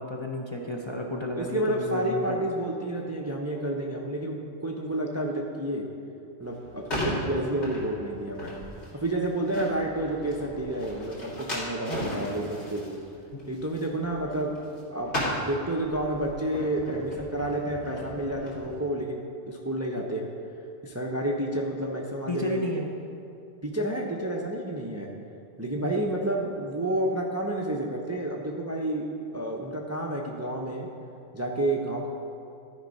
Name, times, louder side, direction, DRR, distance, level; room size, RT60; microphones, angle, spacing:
voice 1, 0.0-2.4 13.3-13.4 22.3-22.9 25.7-26.0, left 2 dB, 30° left, -1 dB, 0.7 m, -32 dB
voice 2, 1.4-5.9 6.4-8.5 8.9-13.0 13.5-14.6 14.9-20.2 20.8-22.6 23.6-25.1 25.6-29.1 29.3-30.9 31.3-32.1, right 1 dB, 15° right, -1 dB, 0.6 m, -30 dB
sound 1, 6.4-14.8 15.0-18.7, equal, 80° left, 2.6 m, -36 dB
13.0 x 4.6 x 5.3 m, 2.6 s
omnidirectional pair, 1.1 m